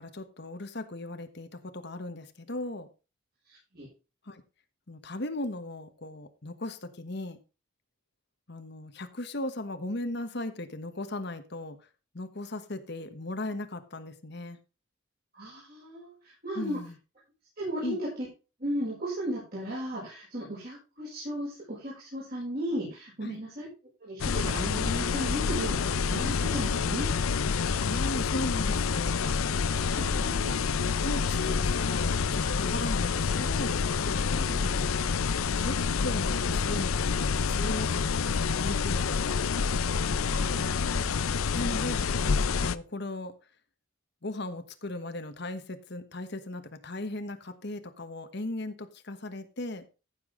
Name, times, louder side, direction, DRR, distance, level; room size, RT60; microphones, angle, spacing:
voice 1, 0.0-2.9 4.3-4.4 4.9-7.4 8.5-11.8 12.1-14.6 16.5-17.0 17.8-18.0 23.2-23.4 27.8-29.3 30.0-30.3 31.0-34.5 35.6-39.5 41.5-42.1 42.6-43.3 44.2-49.8, left 1 dB, 55° left, 9 dB, 1.2 m, -37 dB
voice 2, 15.3-16.1 16.4-16.8 17.6-18.3 18.6-23.7 24.0-27.1 29.8-30.7 34.4-34.8 40.3-41.3, equal, 45° right, -7 dB, 6.7 m, -35 dB
sound 1, 24.2-42.7, left 5 dB, 85° left, 0.6 m, -28 dB
15.0 x 7.1 x 3.9 m, 0.32 s
head